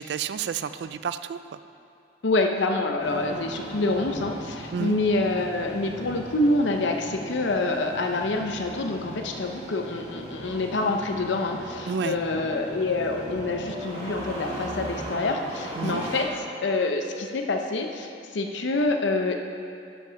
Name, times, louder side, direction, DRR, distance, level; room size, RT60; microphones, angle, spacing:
voice 1, 0.0-1.6 4.7-5.0 11.9-12.2 15.8-16.0, right 7 dB, 60° right, 12 dB, 0.3 m, -30 dB
voice 2, 2.2-16.3 16.6-19.4, left 2 dB, 75° left, 4 dB, 0.6 m, -26 dB
Engine starting, 3.0-16.2, right 1 dB, 30° right, 1.8 m, -38 dB
10.0 x 6.5 x 5.6 m, 2.6 s
head